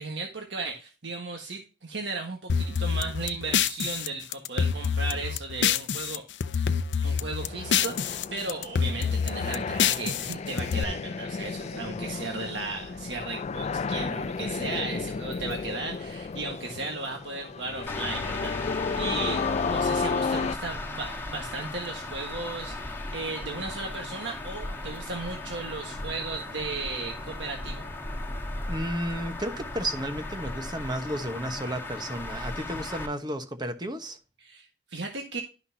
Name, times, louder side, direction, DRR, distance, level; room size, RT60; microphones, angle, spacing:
voice 1, 0.0-6.2 7.0-18.7 19.0-27.9 34.4-35.4, right 3 dB, 90° right, 1.5 m, -35 dB
sound 1, 2.5-6.2 6.4-8.2 8.5-10.8, left 7 dB, 85° left, 0.6 m, -27 dB
sound 2, 7.4-20.6, left 5 dB, 40° left, 0.3 m, -33 dB
sound 3, 17.9-33.1, left 2 dB, 15° left, 1.5 m, -37 dB
voice 2, 28.7-34.2, right 1 dB, 25° right, 1.1 m, -33 dB
12.0 x 5.9 x 2.7 m
head